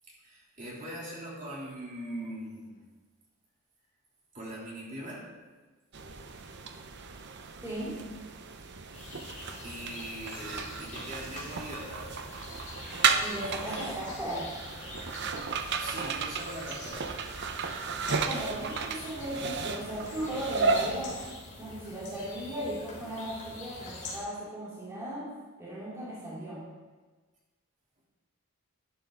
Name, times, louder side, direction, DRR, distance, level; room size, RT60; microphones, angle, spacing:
voice 1, 0.2-2.9 4.3-5.3 8.8-8.9 9.6-12.2 15.8-17.0, right 1 dB, 35° right, -5 dB, 3.2 m, -41 dB
sound 1, 5.9-21.3, right 5 dB, 55° right, 0.8 m, -34 dB
voice 2, 7.6-8.0 13.2-14.5 18.1-21.3 21.6-25.3 25.6-26.7, right 1 dB, 15° right, -8 dB, 2.5 m, -37 dB
sound 2, 8.9-24.2, left 2 dB, 40° left, 3.2 m, -45 dB
12.0 x 10.5 x 3.9 m, 1.3 s
head